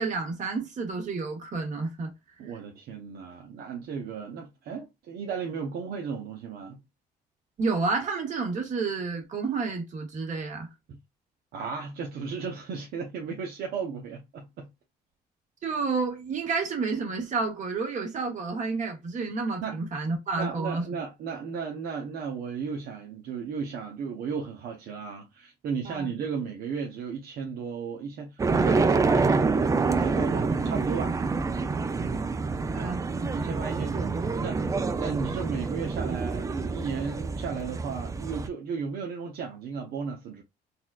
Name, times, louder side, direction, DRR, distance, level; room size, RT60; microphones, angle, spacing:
voice 1, 0.0-2.1 7.6-10.7 15.6-20.8 25.8-26.1 30.5-30.7 32.7-33.5, right 4 dB, 45° right, 1.7 m, -30 dB
voice 2, 2.4-6.8 10.9-11.0 11.5-14.7 19.6-19.8 20.4-31.2 33.3-34.6 35.0-40.4, right 5 dB, 65° right, 0.8 m, -35 dB
sound 1, 28.4-38.5, right 4 dB, 20° right, 0.4 m, -27 dB
4.1 x 2.5 x 2.3 m
cardioid pair, 110°, 17 cm